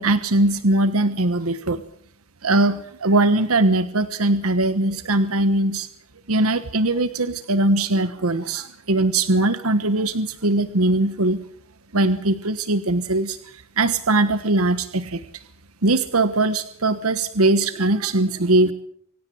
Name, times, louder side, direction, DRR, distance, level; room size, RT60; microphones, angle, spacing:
voice 1, 0.0-1.8 2.4-5.9 6.3-11.4 11.9-15.4 15.8-18.7, right 2 dB, 80° right, 12 dB, 1.3 m, -21 dB
25.5 x 17.0 x 7.9 m, 0.65 s
head